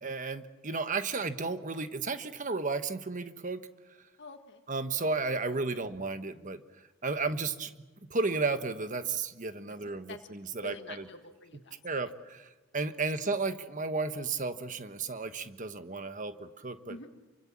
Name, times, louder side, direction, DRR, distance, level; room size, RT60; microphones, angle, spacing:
voice 1, 0.0-3.7 4.7-7.7 8.1-11.1 11.8-17.0, right 3 dB, 35° right, 10 dB, 1.3 m, -33 dB
voice 2, 4.2-4.6 5.8-5.9 10.1-10.2 10.6-11.8 16.9-17.1, left 3 dB, 55° left, 5 dB, 1.8 m, -46 dB
28.0 x 25.0 x 7.4 m, 1.1 s
head